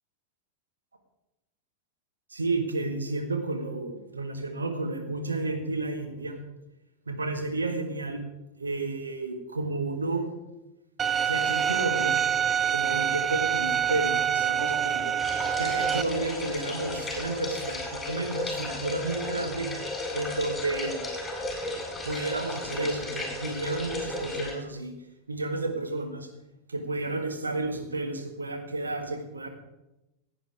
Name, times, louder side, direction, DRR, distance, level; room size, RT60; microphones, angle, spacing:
voice 1, 2.3-6.4 7.1-8.2 8.6-10.2 11.2-12.2 12.7-15.1 15.6-19.7 20.1-21.0 22.0-24.9 25.3-26.3 26.7-29.5, right 2 dB, 75° right, 4 dB, 1.7 m, -31 dB
Bowed string instrument, 11.0-16.0, right 8 dB, 20° right, 0.4 m, -26 dB
sound 1, 15.2-24.5, left 2 dB, 10° left, 4.6 m, -34 dB
16.0 x 8.9 x 4.8 m, 0.96 s
figure-of-eight pair, 90°, 0 cm